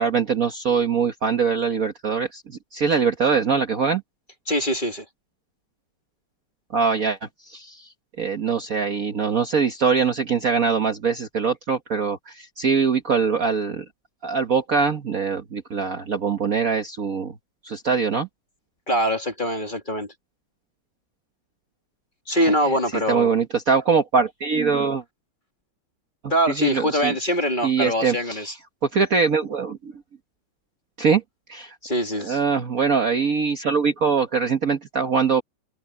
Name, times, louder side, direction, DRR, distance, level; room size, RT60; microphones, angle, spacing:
voice 1, 0.0-4.0 6.7-7.9 8.2-13.8 14.2-17.3 17.6-18.3 22.3-22.8 23.1-25.0 26.2-27.1 27.6-28.5 28.8-30.0 31.0-31.2 31.5-31.8 32.2-35.4, right 5 dB, 45° right, 1.5 m, -23 dB
voice 2, 4.5-5.0 18.9-20.1 22.3-23.3 26.3-28.5 31.8-32.4, equal, 20° left, 2.3 m, -23 dB
omnidirectional pair, 2.4 m